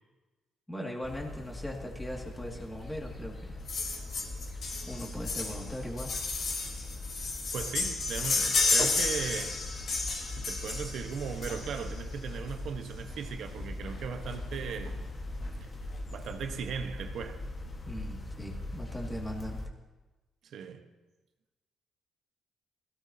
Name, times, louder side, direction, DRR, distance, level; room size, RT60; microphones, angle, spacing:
voice 1, 0.7-3.6 4.9-6.2 17.9-19.6, equal, 10° left, 2.3 m, -39 dB
sound 1, 1.0-19.7, left 2 dB, 35° left, 1.5 m, -41 dB
sound 2, 3.7-12.0 13.1-13.2 13.5-13.6 13.8-14.0 14.3-14.9 15.4-15.5, left 3 dB, 55° left, 3.4 m, -32 dB
voice 2, 7.5-9.6 10.2-15.0 15.6-15.7 16.1-17.4 20.4-20.9, right 7 dB, 70° right, 1.2 m, -38 dB
20.5 x 17.0 x 2.9 m
cardioid pair, 90°, 0 cm